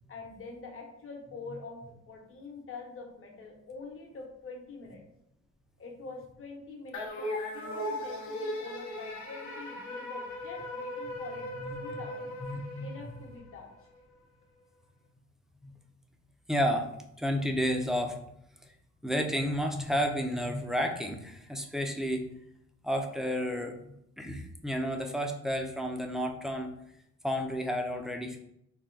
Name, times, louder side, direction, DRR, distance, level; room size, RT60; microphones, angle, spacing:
voice 1, 0.1-1.8 2.1-5.0 5.8-12.3 12.8-13.9, left 3 dB, 45° left, 1 dB, 0.9 m, -45 dB
sound 1, 6.9-13.5, left 1 dB, 70° left, 0.8 m, -38 dB
voice 2, 11.6-12.0 12.4-12.9 15.6-15.7 16.5-18.2 19.0-22.3 22.8-23.8 24.2-26.7 27.2-28.4, equal, ahead, 3 dB, 0.4 m, -31 dB
3.4 x 2.2 x 3.7 m, 0.77 s
cardioid pair, 90°, 30 cm